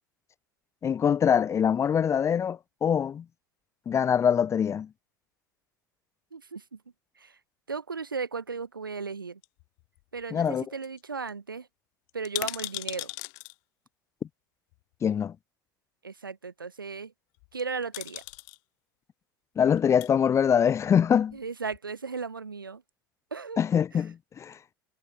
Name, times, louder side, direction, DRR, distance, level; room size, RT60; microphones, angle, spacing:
voice 1, 0.8-3.2 3.9-4.9 10.3-10.6 15.0-15.3 19.6-21.4 23.6-24.6, left 8 dB, 25° left, 0.8 m, -24 dB
voice 2, 6.3-6.8 7.2-7.4 7.7-9.4 10.1-11.7 12.1-13.1 16.0-17.1 17.5-18.2 21.3-22.8 23.3-23.6 23.9-24.0, right 5 dB, 80° right, 4.1 m, -36 dB
sound 1, 9.4-10.2 10.5-10.6 10.8-11.0 11.3-11.4 12.1-13.5 14.7-14.8 17.4-17.6 17.9-18.6 19.7-20.1 20.8-21.5 21.7-21.8, left 36 dB, 55° left, 6.7 m, -38 dB
figure-of-eight pair, 75°, 11 cm